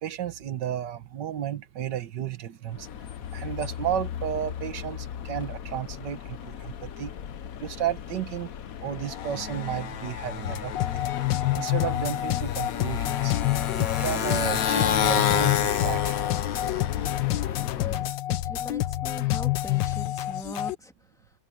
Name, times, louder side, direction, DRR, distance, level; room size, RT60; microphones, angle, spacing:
voice 1, 0.0-2.9 3.3-7.1 7.6-8.5 8.8-11.1 11.5-13.3 13.8-16.2, right 10 dB, 75° right, 1.8 m, -33 dB
Motorcycle, 2.7-18.1, left 9 dB, 55° left, 1.2 m, -31 dB
sound 1, 10.4-20.7, left 15 dB, 90° left, 1.5 m, -28 dB
voice 2, 17.8-21.3, left 1 dB, ahead, 2.0 m, -42 dB
omnidirectional pair, 1.9 m